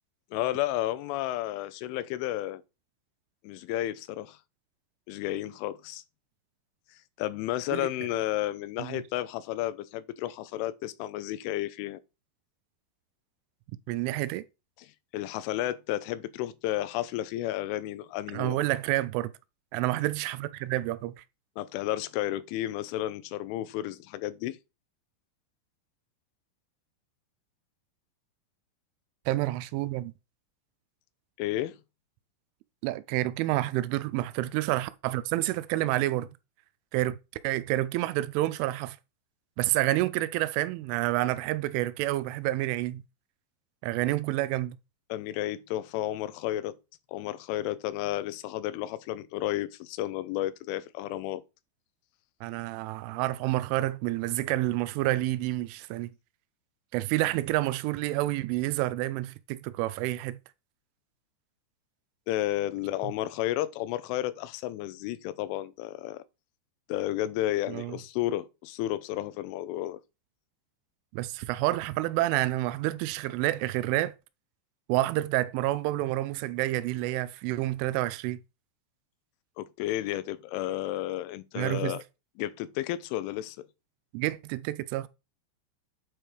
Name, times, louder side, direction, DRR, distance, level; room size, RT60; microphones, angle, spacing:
voice 1, 0.3-2.6 3.4-4.4 5.1-6.0 7.2-12.0 15.1-18.6 21.6-24.6 31.4-31.8 45.1-46.8 47.1-51.4 62.3-66.2 66.9-70.0 79.6-82.0 82.4-83.7, left 14 dB, 90° left, 3.2 m, -32 dB
voice 2, 13.9-14.4 18.3-19.3 19.7-21.2 29.3-30.1 32.8-36.3 36.9-39.0 39.6-43.0 43.8-44.8 52.4-56.1 56.9-60.4 63.0-63.1 67.7-68.0 71.1-74.1 74.9-78.4 81.6-82.0 84.1-85.1, right 16 dB, 90° right, 3.1 m, -29 dB
8.7 x 4.6 x 4.9 m
omnidirectional pair, 5.5 m